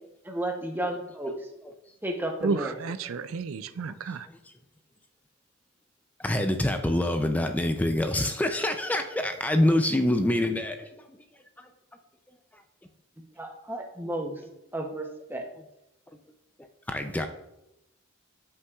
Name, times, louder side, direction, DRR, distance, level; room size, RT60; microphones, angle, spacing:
voice 1, 0.2-1.5 2.0-2.7 13.4-14.4 14.7-15.5, right 1 dB, 10° right, 3 dB, 0.7 m, -32 dB
voice 2, 2.4-4.3, right 4 dB, 80° right, 13 dB, 0.4 m, -31 dB
voice 3, 6.2-10.9 14.0-14.1 15.5-15.6 16.9-17.3, left 1 dB, 10° left, 6 dB, 0.4 m, -25 dB
13.0 x 5.6 x 2.4 m, 0.90 s
head